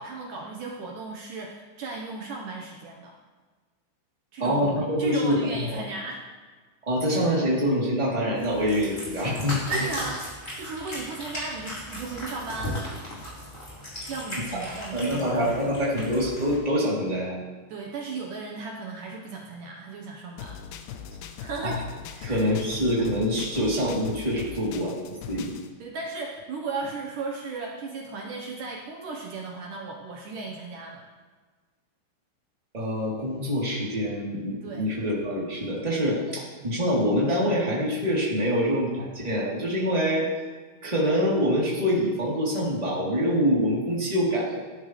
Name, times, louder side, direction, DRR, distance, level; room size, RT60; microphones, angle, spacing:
voice 1, 0.0-3.2 4.3-6.2 9.7-10.2 10.5-12.8 14.1-15.4 17.7-20.6 21.4-21.8 22.2-22.5 25.8-31.1 34.6-34.9 36.2-36.4, right 3 dB, 90° right, -1 dB, 1.8 m, -35 dB
voice 2, 4.4-5.8 6.9-9.6 14.5-14.6 14.9-17.4 21.6-21.8 22.2-25.0 25.3-25.5 32.7-40.3 40.8-44.6, equal, 10° right, -5 dB, 2.4 m, -25 dB
Cat, 8.4-16.5, equal, 15° left, 4.6 m, -37 dB
sound 1, 20.4-25.7, left 8 dB, 75° left, 2.4 m, -40 dB
18.5 x 11.5 x 3.3 m, 1.4 s
omnidirectional pair, 5.4 m